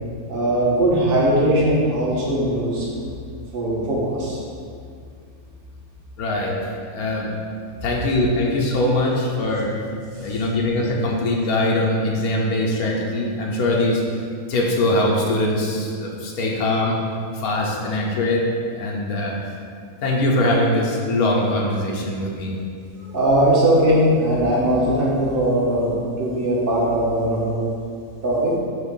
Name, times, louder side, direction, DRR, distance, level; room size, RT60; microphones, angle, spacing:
voice 1, 0.3-2.9 3.5-4.4 23.0-27.6 28.2-28.5, right 1 dB, 40° right, -5 dB, 1.3 m, -20 dB
voice 2, 6.2-7.3 7.8-9.7 10.2-14.0 14.5-17.0 17.3-18.5 18.7-19.4 20.0-22.5, left 1 dB, 80° left, -2 dB, 1.2 m, -22 dB
6.2 x 2.9 x 5.3 m, 2.2 s
omnidirectional pair, 1.5 m